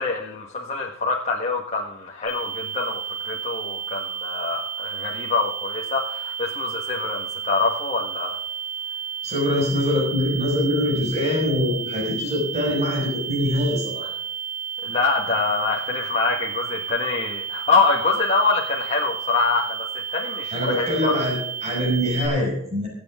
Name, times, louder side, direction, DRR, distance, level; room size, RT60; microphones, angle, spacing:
voice 1, 0.0-8.4 14.8-19.8 20.1-21.2, left 4 dB, 35° left, -3 dB, 1.6 m, -25 dB
sound 1, 2.3-22.3, right 7 dB, 70° right, 3.9 m, -32 dB
voice 2, 9.2-14.1 20.5-22.9, left 1 dB, 35° right, -2 dB, 5.6 m, -23 dB
23.5 x 8.0 x 3.7 m, 0.73 s
head